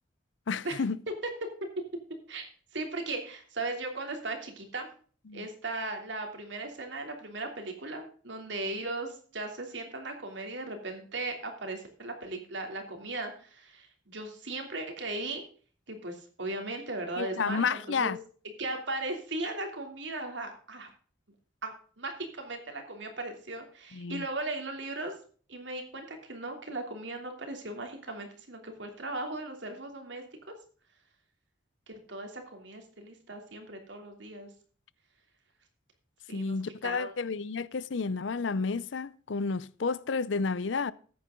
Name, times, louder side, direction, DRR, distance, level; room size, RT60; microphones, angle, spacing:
voice 1, 0.5-1.0 5.3-5.5 17.2-18.2 23.9-24.2 36.3-40.9, left 4 dB, 85° left, 0.6 m, -31 dB
voice 2, 2.7-4.9 5.3-15.4 15.9-18.2 18.6-20.9 21.6-25.1 25.5-30.5 31.9-34.5 36.3-36.6 36.8-37.1, right 2 dB, 80° right, 3.0 m, -37 dB
14.0 x 9.6 x 3.7 m
head